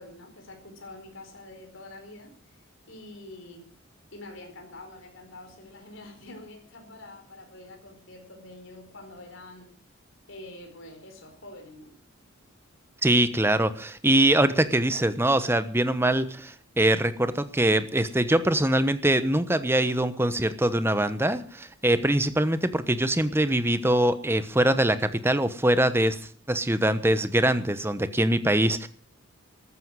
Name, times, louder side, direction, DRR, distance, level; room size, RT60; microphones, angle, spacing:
voice 1, 0.0-2.6 2.9-3.7 4.1-9.7 10.3-11.9, left 2 dB, 70° left, 4 dB, 4.4 m, -46 dB
voice 2, 13.0-26.2 26.5-28.9, right 1 dB, 10° right, 12 dB, 1.1 m, -23 dB
14.5 x 12.5 x 6.3 m, 0.42 s
head